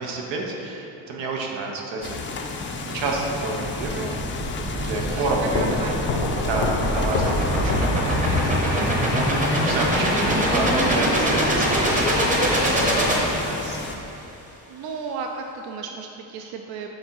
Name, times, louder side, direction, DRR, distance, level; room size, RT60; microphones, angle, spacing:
voice 1, 0.0-2.3 2.8-4.1 4.6-5.6 6.4-7.4 7.6-8.4 8.7-8.9 9.6-13.9, right 3 dB, 85° right, 0 dB, 1.1 m, -29 dB
sound 1, 2.0-14.0, left 3 dB, 30° left, 0.4 m, -33 dB
sound 2, 3.6-13.9, equal, 20° right, 0.9 m, -23 dB
voice 2, 5.0-6.4 14.7-16.9, right 5 dB, 60° right, 3 dB, 0.5 m, -34 dB
sound 3, 5.5-9.2, left 5 dB, 80° left, 0.7 m, -29 dB
6.5 x 3.8 x 4.5 m, 2.9 s
cardioid pair, 145°, 43 cm